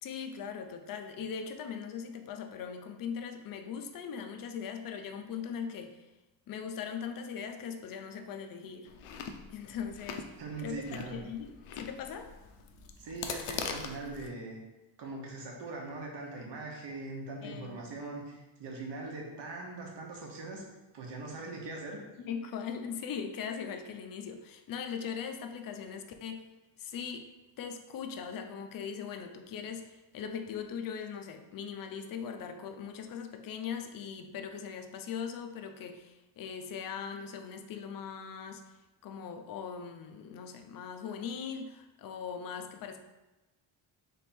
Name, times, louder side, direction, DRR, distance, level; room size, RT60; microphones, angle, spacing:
voice 1, 0.0-6.1 6.5-8.9 9.5-10.3 10.6-12.3 17.4-17.9 22.2-26.5 26.8-27.3 27.6-38.6 39.0-43.0, left 7 dB, 45° left, 6 dB, 0.5 m, -40 dB
Chewing mastication, 8.9-14.3, left 6 dB, 85° left, 0.6 m, -42 dB
voice 2, 10.4-11.2 13.0-14.6 15.0-20.6 20.9-22.0, right 3 dB, 60° right, 0 dB, 1.2 m, -41 dB
3.6 x 3.4 x 4.2 m, 1.1 s
cardioid pair, 135°, 49 cm